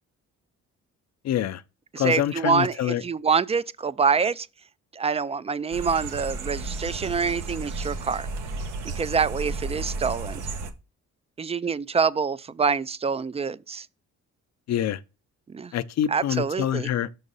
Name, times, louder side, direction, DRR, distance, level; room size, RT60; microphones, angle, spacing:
voice 1, 1.2-1.6 2.0-3.0 14.7-15.0 15.7-17.1, left 11 dB, 60° left, 0.6 m, -26 dB
voice 2, 1.9-4.5 4.9-8.3 8.8-10.4 11.4-13.9 15.5-15.7 16.1-16.9, right 5 dB, 20° right, 0.3 m, -26 dB
sound 1, 5.7-10.7, right 3 dB, 80° right, 1.1 m, -33 dB
6.2 x 4.0 x 5.4 m
cardioid pair, 90°, 30 cm